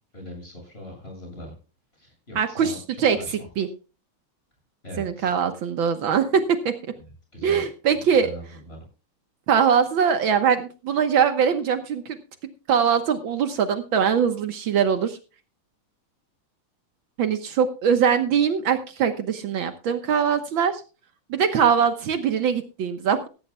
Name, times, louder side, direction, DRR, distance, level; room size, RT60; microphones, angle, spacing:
voice 1, 0.1-1.5 1.9-2.8 3.1-3.5 4.8-5.3 7.0-7.6 7.9-8.8, equal, 25° left, 1 dB, 7.7 m, -41 dB
voice 2, 2.4-3.2 3.6-3.7 5.0-6.7 7.4-8.3 9.5-12.2 12.7-15.2 17.2-20.8 21.3-23.3, right 7 dB, 70° right, 9 dB, 1.8 m, -22 dB
16.0 x 15.5 x 2.2 m, 0.33 s
omnidirectional pair, 2.3 m